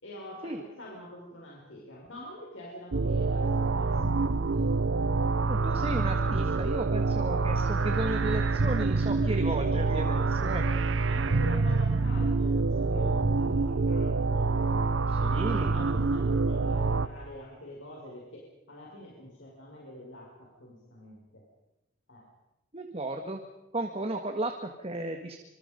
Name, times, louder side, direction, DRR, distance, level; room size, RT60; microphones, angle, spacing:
voice 1, 0.0-4.6 9.4-9.8 10.9-21.4 22.1-22.3, equal, 80° left, -3 dB, 5.9 m, -45 dB
sound 1, 2.9-17.1, right 3 dB, 80° right, 0.8 m, -26 dB
voice 2, 5.5-10.6 15.2-15.7 22.7-23.4 23.7-25.4, right 1 dB, 30° right, 5 dB, 1.8 m, -34 dB
26.5 x 26.0 x 5.3 m, 0.92 s
head